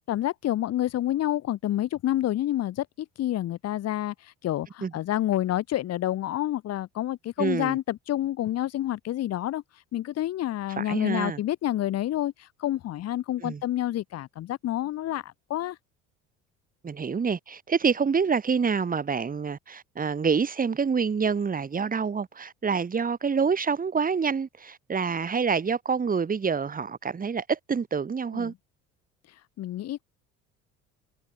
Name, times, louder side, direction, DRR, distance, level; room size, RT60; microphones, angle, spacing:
voice 1, 0.1-4.1 4.4-9.6 9.9-12.3 12.6-15.2 15.5-15.8 28.3-28.5 29.6-30.0, left 13 dB, 55° left, 2.4 m, -28 dB
voice 2, 7.4-7.8 10.8-11.4 13.4-13.6 16.8-28.5, right 5 dB, 30° right, 4.5 m, -27 dB
supercardioid pair, 100°, 29 cm